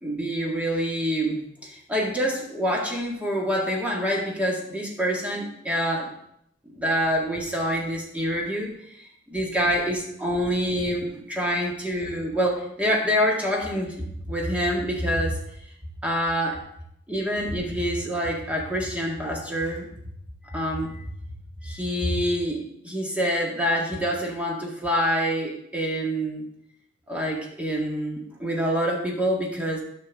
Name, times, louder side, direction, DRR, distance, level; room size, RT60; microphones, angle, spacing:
voice 1, 0.0-6.1 6.7-15.4 16.0-16.6 17.1-19.9 20.4-21.0 21.6-26.5 27.1-29.8, equal, 5° right, -2 dB, 1.8 m, -26 dB
13.0 x 6.0 x 3.5 m, 0.74 s
head